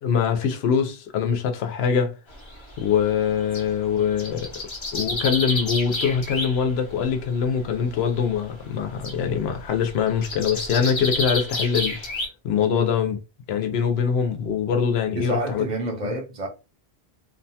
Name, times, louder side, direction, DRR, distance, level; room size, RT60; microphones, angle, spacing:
voice 1, 0.0-2.1 2.8-4.5 4.9-12.0 12.4-13.2 13.5-15.7 16.0-16.1, left 7 dB, 85° left, 0.8 m, -23 dB
sound 1, 2.3-3.7 4.0-6.7 7.0-7.4 8.1-8.5 8.8-12.3, left 2 dB, 35° left, 0.6 m, -30 dB
voice 2, 15.2-16.5, right 2 dB, 50° right, 0.7 m, -29 dB
2.7 x 2.1 x 2.7 m
omnidirectional pair, 1.0 m